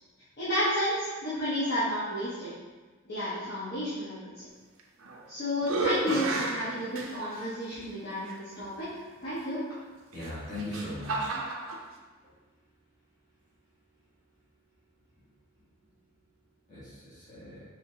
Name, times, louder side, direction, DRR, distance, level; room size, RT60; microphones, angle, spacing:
voice 1, 0.4-2.5 3.0-4.2 5.3-8.9 9.2-9.6, equal, 55° left, -11 dB, 0.9 m, -31 dB
sound 1, 4.8-5.3 5.6-7.5 8.3-8.4 10.1-11.8, right 2 dB, 75° right, 0.5 m, -32 dB
voice 2, 10.1-11.3 16.7-17.6, left 1 dB, 40° left, -10 dB, 1.3 m, -39 dB
4.1 x 3.0 x 2.7 m, 1.3 s
head